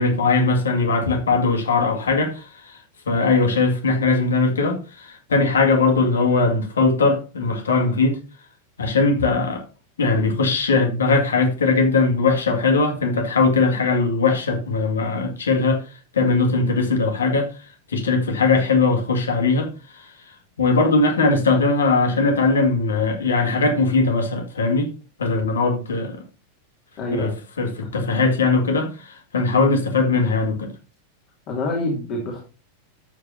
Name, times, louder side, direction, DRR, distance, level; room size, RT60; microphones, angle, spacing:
voice 1, 0.0-2.8 3.1-8.2 8.8-9.6 10.0-15.8 16.1-17.5 17.9-20.0 20.6-24.9 25.2-26.2 27.1-27.3 27.6-30.7, left 3 dB, 70° left, 2.1 m, -20 dB
voice 2, 27.0-27.3 29.5-29.7 31.5-32.4, left 2 dB, 40° left, 2.8 m, -26 dB
13.0 x 7.8 x 2.8 m
figure-of-eight pair, 90°, 0 cm